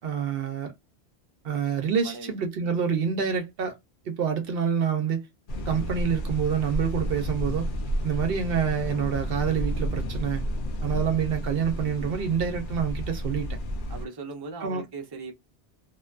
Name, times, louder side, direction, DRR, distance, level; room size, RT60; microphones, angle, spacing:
voice 1, 0.0-0.7 1.4-3.8 4.1-5.3 5.7-7.7 8.0-10.4 10.8-13.6 14.6-14.8, right 7 dB, 65° right, 0.7 m, -27 dB
voice 2, 1.9-2.3 2.6-2.8 11.8-12.2 13.9-15.3, right 4 dB, 30° right, 0.5 m, -40 dB
sound 1, 5.5-14.1, equal, 60° left, 0.6 m, -31 dB
2.5 x 2.2 x 2.4 m
omnidirectional pair, 1.1 m